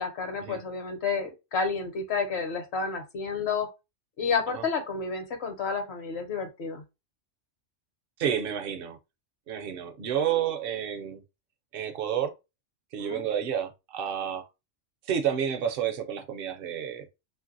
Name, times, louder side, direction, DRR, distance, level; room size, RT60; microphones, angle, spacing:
voice 1, 0.0-3.7 4.2-6.8 13.0-13.2, left 5 dB, 65° left, 1.0 m, -30 dB
voice 2, 8.2-9.0 9.5-11.2 11.7-12.3 12.9-14.5 15.1-17.1, right 9 dB, 60° right, 0.7 m, -30 dB
3.1 x 2.6 x 2.6 m
omnidirectional pair, 1.2 m